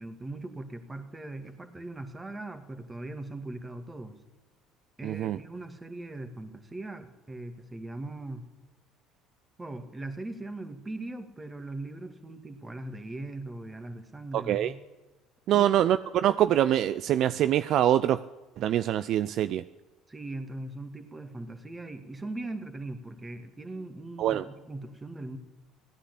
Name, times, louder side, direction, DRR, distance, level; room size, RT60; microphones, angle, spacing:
voice 1, 0.0-4.2 5.0-8.4 9.6-14.8 15.5-15.7 20.1-25.4, right 2 dB, 20° right, 7 dB, 2.3 m, -40 dB
voice 2, 5.0-5.4 14.3-14.7 15.5-18.2 18.6-19.6 24.2-24.4, right 11 dB, 60° right, 14 dB, 0.4 m, -24 dB
15.5 x 9.8 x 8.3 m, 1.2 s
hypercardioid pair, 65°, 0 cm